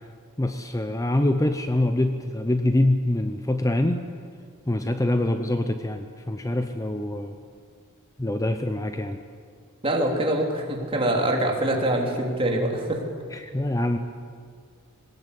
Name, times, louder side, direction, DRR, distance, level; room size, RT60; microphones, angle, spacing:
voice 1, 0.4-4.1 4.7-7.4 8.2-9.2 13.3-14.0, left 1 dB, 15° left, 7 dB, 0.8 m, -25 dB
voice 2, 9.8-13.0, right 1 dB, 25° right, 0 dB, 3.3 m, -24 dB
21.0 x 19.0 x 8.5 m, 2.1 s
head